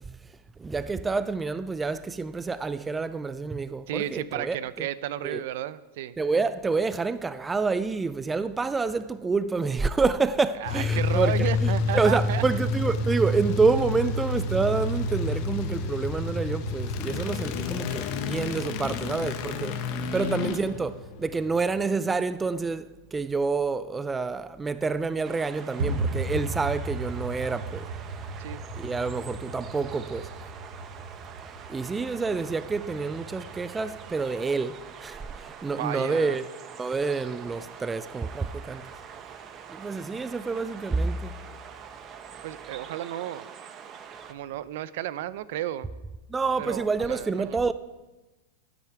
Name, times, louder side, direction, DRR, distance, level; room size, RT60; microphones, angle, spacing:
voice 1, 0.6-4.6 5.2-5.4 6.2-19.8 20.1-27.9 28.8-30.3 31.7-36.5 36.8-38.9 39.7-41.4 46.3-47.7, right 4 dB, 10° right, 0.3 m, -28 dB
voice 2, 3.9-6.2 10.6-12.4 20.1-20.4 28.4-28.6 35.7-36.4 42.4-43.5 44.2-45.9 46.6-47.6, right 13 dB, 65° right, 0.5 m, -33 dB
sound 1, 10.7-21.8, left 3 dB, 50° left, 1.1 m, -29 dB
sound 2, 25.2-44.3, right 7 dB, 30° right, 0.8 m, -45 dB
sound 3, 25.8-34.1, right 2 dB, 80° right, 4.8 m, -36 dB
12.5 x 9.4 x 4.6 m
supercardioid pair, 140°, 0 cm